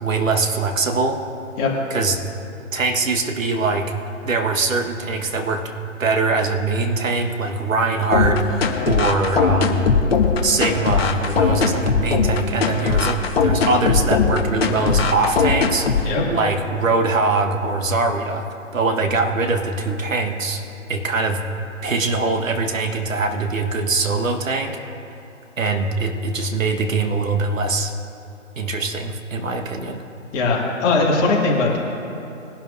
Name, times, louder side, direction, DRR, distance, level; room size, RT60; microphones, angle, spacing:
voice 1, 0.0-1.2 1.9-2.2 2.7-3.9 4.2-5.7 6.0-10.0 10.4-18.5 18.7-20.6 20.9-21.4 21.8-24.8 25.6-27.9 28.6-30.0, right 3 dB, 80° right, 5 dB, 1.5 m, -22 dB
sound 1, 8.1-16.1, left 5 dB, 50° left, 1.3 m, -19 dB
voice 2, 30.3-31.8, left 3 dB, 20° left, -4 dB, 2.1 m, -19 dB
21.0 x 11.5 x 2.7 m, 3.0 s
figure-of-eight pair, 140°, 39 cm